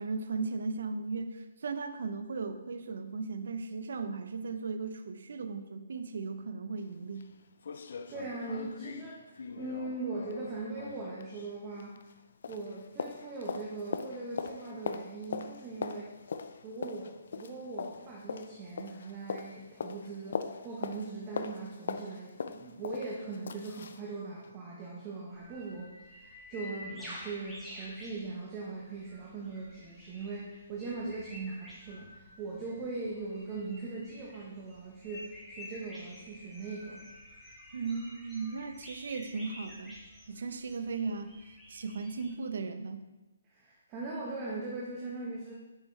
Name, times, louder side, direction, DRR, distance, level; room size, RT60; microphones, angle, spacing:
voice 1, 0.0-7.3 37.7-40.0 40.3-41.4 41.7-43.0, right 4 dB, 65° right, 9 dB, 0.6 m, -36 dB
sound 1, 6.8-6.9 7.2-7.3 7.6-12.2 12.4-24.1 24.4-24.5, left 5 dB, 65° left, 0.4 m, -41 dB
voice 2, 8.1-12.0 12.5-16.1 16.6-37.0 43.4-45.5, right 3 dB, 25° right, -3 dB, 0.9 m, -40 dB
sound 2, 25.3-42.3, left 1 dB, ahead, 1.5 m, -50 dB
6.7 x 5.4 x 3.1 m, 1.1 s
hypercardioid pair, 155°, 0 cm